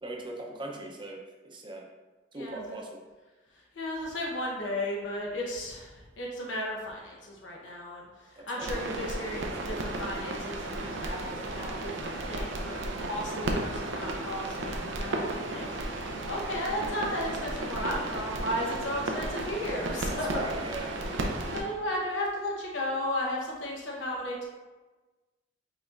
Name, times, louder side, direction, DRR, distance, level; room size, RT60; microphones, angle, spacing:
voice 1, 0.0-1.2 1.4-1.8 2.3-3.0 8.4-8.7 19.7-20.9, right 2 dB, 25° right, 0 dB, 0.7 m, -39 dB
voice 2, 2.3-2.8 3.5-20.5 21.5-24.5, left 1 dB, 75° left, -2 dB, 1.0 m, -35 dB
sound 1, 8.6-21.6, right 2 dB, 90° right, 0.6 m, -34 dB
5.0 x 4.1 x 2.5 m, 1.2 s
head